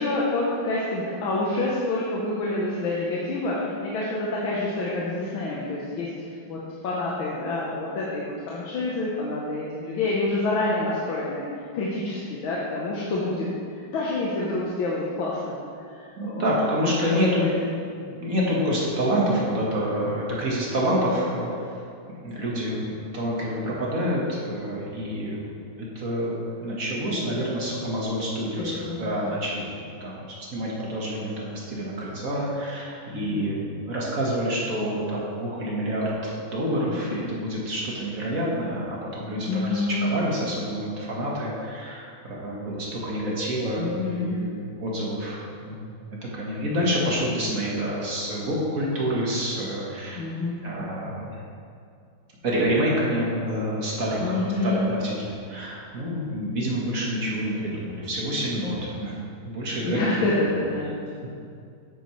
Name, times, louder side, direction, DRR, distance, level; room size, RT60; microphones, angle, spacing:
voice 1, 0.0-11.5 11.7-15.6 15.9-16.5 17.0-17.5 27.2-27.4 28.6-29.1 33.1-33.5 39.5-40.1 43.8-44.4 50.2-50.6 54.2-54.8 59.8-60.9, left 2 dB, 75° left, -5 dB, 1.7 m, -28 dB
voice 2, 16.2-17.6 18.0-21.8 22.2-30.2 30.5-50.2 50.6-51.4 52.4-59.2 59.4-60.0 60.3-60.5, equal, 45° right, -4 dB, 1.7 m, -28 dB
9.4 x 8.6 x 3.2 m, 2.4 s
omnidirectional pair, 2.3 m